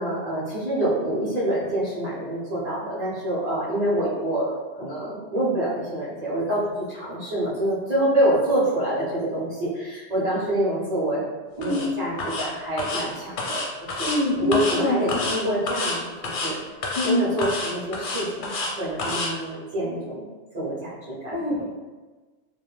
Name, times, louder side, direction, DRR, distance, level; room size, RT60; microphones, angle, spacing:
voice 1, 0.0-11.2 11.6-14.1 14.4-16.6 17.0-20.3 20.5-21.3, right 1 dB, 45° right, -9 dB, 0.6 m, -26 dB
sound 1, 11.6-11.9 12.2-12.5 12.8-13.0 13.4-14.2 14.5-14.8 15.1-15.4 15.7-16.0 16.2-16.5 16.8-17.1 17.4-18.7 19.0-19.3, left 2 dB, 80° left, 0.9 m, -28 dB
voice 2, 11.6-12.0 14.0-15.3 16.9-17.3 21.3-21.6, left 1 dB, 40° left, -10 dB, 0.4 m, -25 dB
2.3 x 2.1 x 3.0 m, 1.3 s
omnidirectional pair, 1.2 m